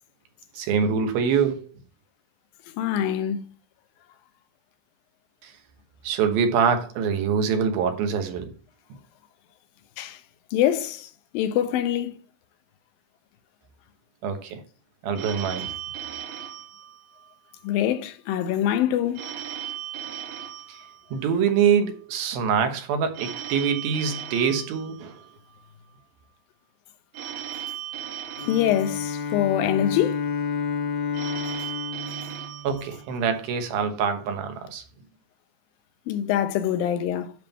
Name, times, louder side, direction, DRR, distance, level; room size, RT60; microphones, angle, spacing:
voice 1, 0.5-1.7 5.4-5.5 6.0-8.5 14.2-14.6 15.0-15.7 20.7-20.8 21.1-25.2 32.6-34.8, right 6 dB, 90° right, 3.1 m, -24 dB
voice 2, 2.8-3.5 10.0-10.2 10.5-12.2 17.6-19.3 28.5-30.2 36.1-37.3, left 11 dB, 80° left, 2.6 m, -24 dB
Telephone, 15.1-17.6 19.1-21.6 23.1-25.6 27.1-29.6 31.1-33.6, right 10 dB, 70° right, 1.3 m, -37 dB
Bowed string instrument, 28.4-33.2, left 5 dB, 55° left, 2.1 m, -30 dB
9.9 x 3.6 x 6.9 m
omnidirectional pair, 4.1 m